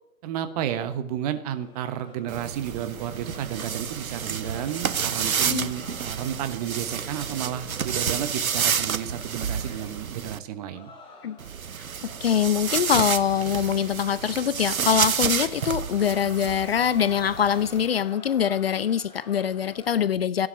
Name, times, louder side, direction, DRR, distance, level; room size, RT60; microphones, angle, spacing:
voice 1, 0.2-10.9, right 10 dB, 25° right, 10 dB, 1.2 m, -32 dB
sound 1, 1.5-7.7 8.0-9.0 9.3-10.1 10.5-12.9 13.2-14.1 14.4-15.4 15.6-19.9, left 3 dB, 10° left, 4.3 m, -50 dB
sound 2, 2.3-10.4 11.4-17.9, right 7 dB, 75° right, 1.0 m, -30 dB
voice 2, 12.2-20.5, left 8 dB, 45° left, 17 dB, 0.6 m, -24 dB
15.0 x 11.0 x 6.1 m, 0.70 s
figure-of-eight pair, 130°, 42 cm